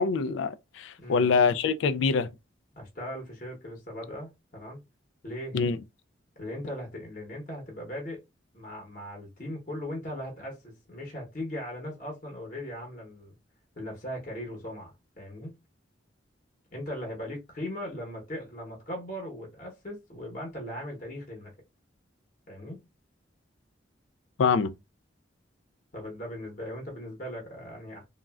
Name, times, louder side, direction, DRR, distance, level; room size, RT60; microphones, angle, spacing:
voice 1, 0.0-2.3 5.5-5.8 24.4-24.7, left 5 dB, 80° left, 0.3 m, -24 dB
voice 2, 1.0-1.3 2.7-4.8 5.2-5.6 6.4-8.2 8.5-13.4 13.8-15.5 16.7-21.5 22.5-22.8 25.9-28.0, left 1 dB, 45° left, 0.9 m, -39 dB
3.1 x 2.4 x 2.3 m
head